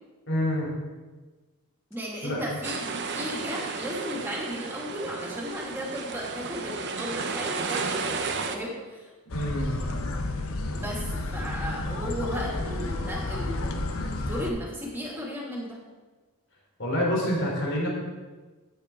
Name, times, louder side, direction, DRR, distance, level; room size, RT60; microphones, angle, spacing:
voice 1, 0.3-0.7 2.2-2.4 9.3-9.8 16.8-17.9, equal, 55° left, -3 dB, 3.7 m, -27 dB
voice 2, 1.9-9.1 10.7-15.8, equal, 10° right, -3 dB, 2.5 m, -35 dB
sound 1, 2.6-8.6, right 4 dB, 50° right, 0.9 m, -33 dB
sound 2, 9.3-14.5, left 2 dB, 70° left, 1.0 m, -31 dB
14.0 x 9.0 x 3.8 m, 1.3 s
head